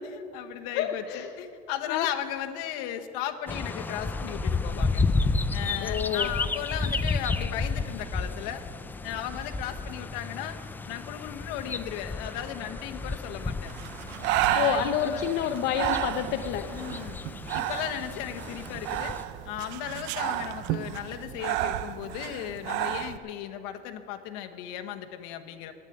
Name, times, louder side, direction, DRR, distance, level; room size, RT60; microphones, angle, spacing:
voice 1, 0.0-5.0 5.5-8.6 9.0-10.6 10.8-13.7 14.5-15.3 16.7-17.2 17.5-19.2 19.4-25.7, left 11 dB, 90° left, 6 dB, 1.0 m, -36 dB
voice 2, 0.8-1.3 1.9-2.1 5.8-6.3 14.5-16.7, left 9 dB, 55° left, 7 dB, 0.7 m, -28 dB
sound 1, 3.5-19.2, left 3 dB, 10° left, 0.3 m, -32 dB
Breathing, 13.7-23.2, right 13 dB, 65° right, 0.6 m, -32 dB
11.5 x 9.0 x 9.9 m, 2.6 s
cardioid pair, 155°, 21 cm